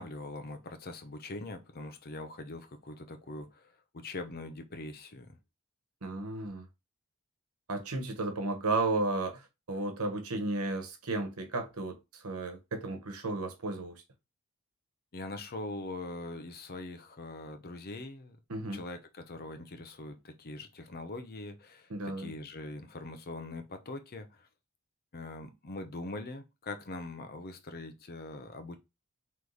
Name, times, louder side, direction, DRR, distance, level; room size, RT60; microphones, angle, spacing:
voice 1, 0.0-5.4 15.1-18.4 18.7-24.5 25.1-28.8, left 2 dB, 45° left, 0.7 m, -42 dB
voice 2, 6.0-6.7 7.7-13.9 18.5-18.8 21.9-22.3, right 2 dB, 90° right, 1.1 m, -33 dB
3.9 x 3.2 x 3.3 m
head